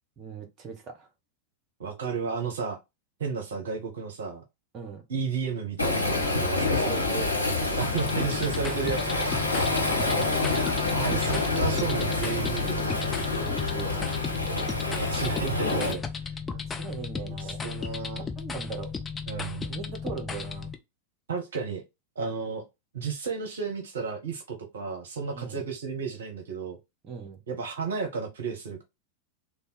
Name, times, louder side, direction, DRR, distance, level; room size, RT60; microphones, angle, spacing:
voice 1, 0.2-1.1 4.7-5.0 6.7-7.8 9.8-10.9 13.5-14.1 16.5-17.6 17.9-18.9 19.7-20.7 25.3-25.7 27.0-27.4, right 6 dB, 30° right, 1.0 m, -40 dB
voice 2, 1.8-2.8 3.2-4.4 5.1-7.0 7.7-9.3 10.9-12.9 14.5-16.3 17.4-18.2 19.3-19.7 21.3-21.8 22.2-22.6 22.9-26.8 27.5-28.8, right 6 dB, 65° right, 0.8 m, -33 dB
Waves surf, 5.8-15.9, left 3 dB, 85° left, 1.1 m, -27 dB
sound 1, 8.0-20.8, left 5 dB, 15° left, 0.5 m, -35 dB
3.4 x 2.3 x 4.2 m
figure-of-eight pair, 90°, 0 cm